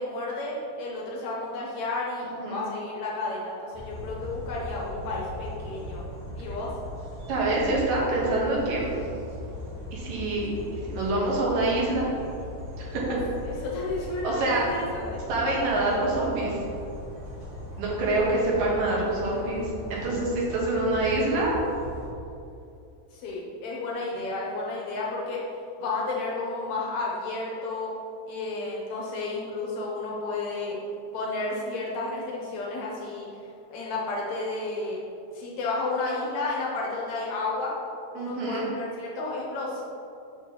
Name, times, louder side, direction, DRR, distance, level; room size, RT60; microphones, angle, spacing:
voice 1, 0.0-6.0 6.4-6.7 12.9-13.2 13.4-15.2 17.7-17.8 23.1-25.4 25.8-28.0 28.3-30.8 31.1-33.3 33.7-35.0 35.3-37.8 38.1-39.8, left 3 dB, 70° left, -4 dB, 2.0 m, -32 dB
voice 2, 2.2-2.6 7.3-8.9 9.9-10.5 10.9-12.1 12.8-13.0 14.2-14.6 15.3-16.6 17.8-21.6 38.2-38.7, right 2 dB, 90° right, -4 dB, 2.8 m, -26 dB
sound 1, 3.7-22.1, left 1 dB, 50° right, 2.5 m, -39 dB
6.5 x 5.8 x 3.0 m, 2.6 s
omnidirectional pair, 3.7 m